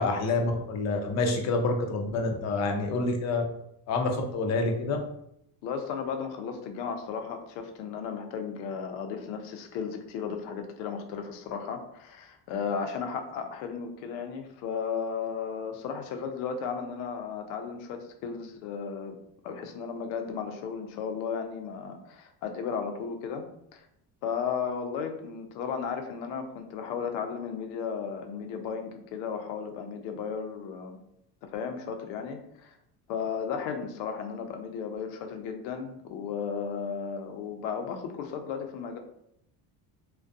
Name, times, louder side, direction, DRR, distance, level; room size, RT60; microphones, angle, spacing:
voice 1, 0.0-3.4 3.9-5.0, left 3 dB, 40° left, 3 dB, 0.5 m, -27 dB
voice 2, 5.6-19.1 19.4-23.4 23.7-23.9 24.2-31.0 31.4-32.8 33.1-39.0, left 6 dB, 90° left, 5 dB, 0.5 m, -34 dB
2.3 x 2.2 x 2.5 m, 0.76 s
cardioid pair, 125°, 43 cm